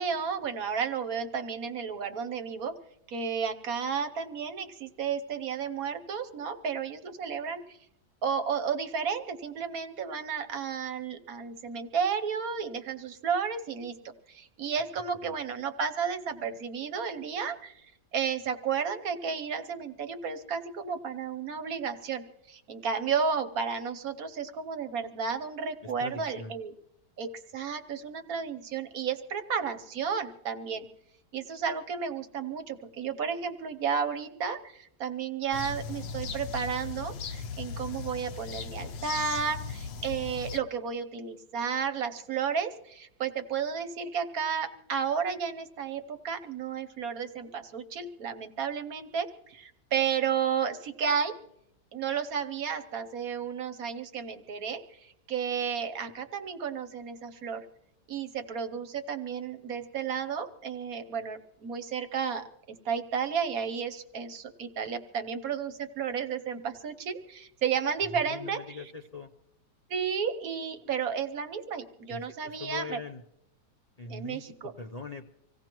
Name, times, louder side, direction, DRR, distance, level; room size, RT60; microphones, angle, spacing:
voice 1, 0.0-2.7 3.1-7.8 8.2-26.7 27.2-30.9 31.3-51.4 51.9-57.6 58.1-68.8 69.9-73.0 74.1-74.7, right 6 dB, 60° right, 8 dB, 1.3 m, -32 dB
voice 2, 25.8-26.5 68.1-69.3 72.1-73.2 74.0-75.3, left 4 dB, 75° left, 4 dB, 0.3 m, -42 dB
sound 1, 35.5-40.6, left 5 dB, 90° left, 1.5 m, -38 dB
25.5 x 16.5 x 3.0 m, 0.78 s
omnidirectional pair, 1.9 m